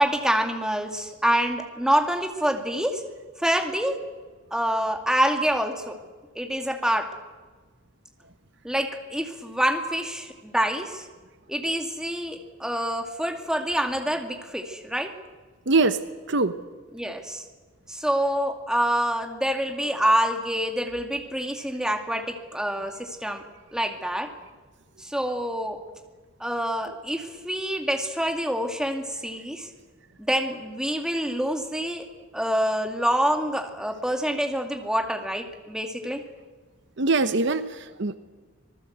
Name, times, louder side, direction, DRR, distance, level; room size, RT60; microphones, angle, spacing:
voice 1, 0.0-3.0 3.4-4.0 4.5-6.0 6.4-7.1 8.6-11.1 11.5-15.1 16.9-17.4 17.9-23.4 23.7-24.3 25.0-25.8 26.4-29.7 30.2-32.1 32.3-36.2, equal, 5° right, 4 dB, 2.3 m, -26 dB
voice 2, 15.7-16.0 16.3-16.6 37.0-38.2, right 3 dB, 60° right, 11 dB, 1.0 m, -22 dB
26.0 x 19.0 x 8.1 m, 1.4 s
head